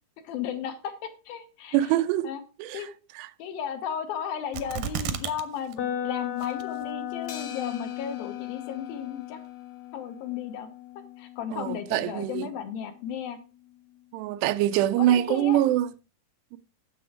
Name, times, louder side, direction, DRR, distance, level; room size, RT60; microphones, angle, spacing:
voice 1, 0.2-1.8 2.2-2.4 2.7-2.9 3.4-9.4 9.9-10.7 11.2-13.4 15.0-15.6, left 8 dB, 70° left, 2.7 m, -34 dB
voice 2, 1.7-2.3 2.6-2.9 3.2-3.3 11.5-12.5 14.1-15.9 16.5-16.6, right 13 dB, 90° right, 2.8 m, -24 dB
sound 1, 4.5-5.4 5.7-5.8 6.4-6.9 7.4-7.5, right 9 dB, 75° right, 2.2 m, -32 dB
sound 2, 5.8-13.7, left 11 dB, 85° left, 1.5 m, -37 dB
sound 3, 7.3-9.8, left 7 dB, 55° left, 2.8 m, -47 dB
9.9 x 7.7 x 4.8 m
omnidirectional pair, 4.7 m